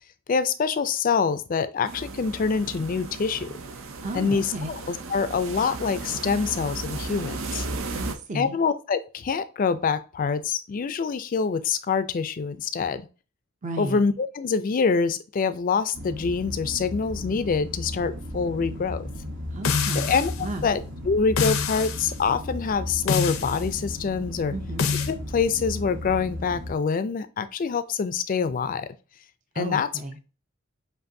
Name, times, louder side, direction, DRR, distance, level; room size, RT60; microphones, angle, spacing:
voice 1, 0.3-3.5 4.1-7.7 8.3-13.1 13.8-19.1 20.0-20.3 20.6-24.5 25.1-28.9 29.6-29.9, left 5 dB, 40° left, 12 dB, 0.4 m, -25 dB
sound 1, 1.8-8.2, right 3 dB, 80° right, 0.6 m, -35 dB
voice 2, 4.0-4.7 7.9-8.6 13.6-14.0 19.5-20.7 24.5-24.9 29.5-30.2, right 1 dB, 35° right, 5 dB, 0.5 m, -33 dB
sound 2, 15.9-26.7, left 1 dB, 65° right, 1.0 m, -35 dB
sound 3, 19.6-20.4 21.4-22.1 23.1-23.6 24.8-25.1, left 6 dB, 85° left, 0.6 m, -26 dB
7.6 x 2.6 x 2.6 m, 0.34 s
head